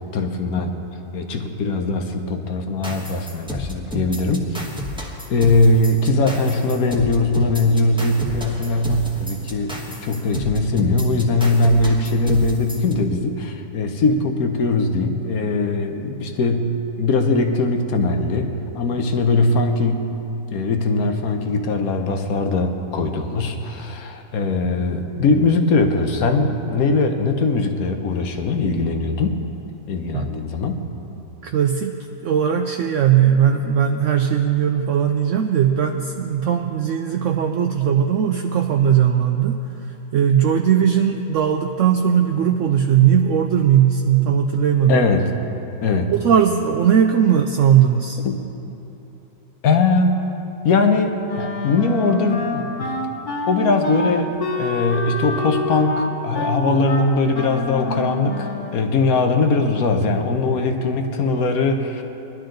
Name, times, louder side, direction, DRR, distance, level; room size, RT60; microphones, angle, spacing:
voice 1, 0.1-0.8 1.1-4.7 5.3-20.1 20.5-29.4 29.9-30.8 44.9-45.3 45.8-46.1 48.2-48.5 49.6-50.2 50.6-53.0 53.5-62.0, left 3 dB, 70° left, 5 dB, 1.4 m, -20 dB
sound 1, 2.8-12.9, left 1 dB, 5° right, 1.1 m, -31 dB
voice 2, 31.4-39.9 40.1-45.0 46.1-48.2, right 8 dB, 65° right, 4 dB, 0.8 m, -18 dB
Wind instrument woodwind instrument, 51.3-58.8, left 2 dB, 90° left, 1.8 m, -27 dB
19.5 x 12.0 x 3.9 m, 3.0 s
omnidirectional pair, 1.6 m